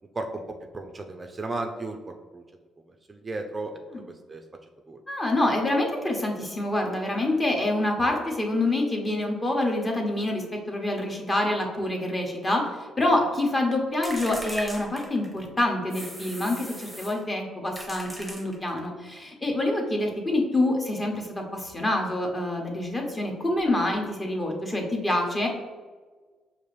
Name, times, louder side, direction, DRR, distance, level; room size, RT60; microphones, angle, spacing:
voice 1, 0.1-2.0 2.3-2.4 3.1-3.7 4.1-4.4 4.9-5.0, right 2 dB, 30° right, 4 dB, 0.4 m, -34 dB
voice 2, 5.1-25.5, left 1 dB, 25° left, 1 dB, 1.0 m, -26 dB
sound 1, 14.0-15.5 15.9-17.2 17.7-18.9, right 1 dB, ahead, 0.9 m, -39 dB
5.2 x 2.5 x 3.2 m, 1.4 s
cardioid pair, 90°, 0 cm